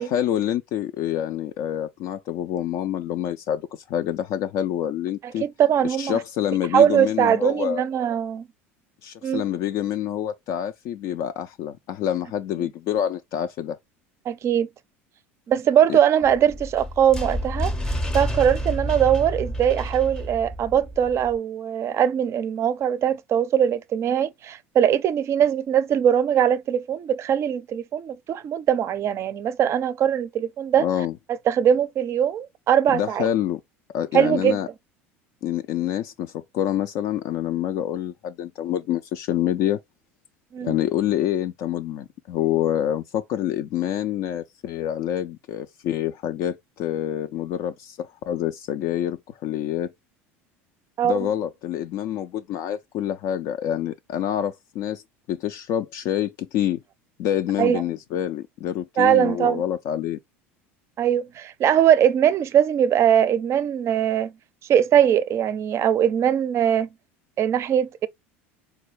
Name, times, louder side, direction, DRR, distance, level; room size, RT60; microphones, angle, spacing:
voice 1, 0.0-5.4 6.0-7.8 9.0-13.8 15.9-16.0 30.8-31.1 32.9-33.6 33.9-34.7 35.4-39.8 40.6-49.9 51.0-55.0 55.3-56.8 57.2-60.2, left 11 dB, 55° left, 0.3 m, -27 dB
voice 2, 5.4-6.2 6.7-8.5 9.2-9.4 14.3-14.7 15.5-17.7 18.1-30.8 31.5-33.3 34.1-34.6 40.5-40.8 51.0-51.3 57.6-57.8 59.0-59.6 61.0-64.3 64.7-66.9 67.4-68.1, right 9 dB, 40° right, 0.4 m, -21 dB
sound 1, 16.2-21.4, equal, 10° left, 0.6 m, -29 dB
3.9 x 2.3 x 3.1 m
hypercardioid pair, 75°, 7 cm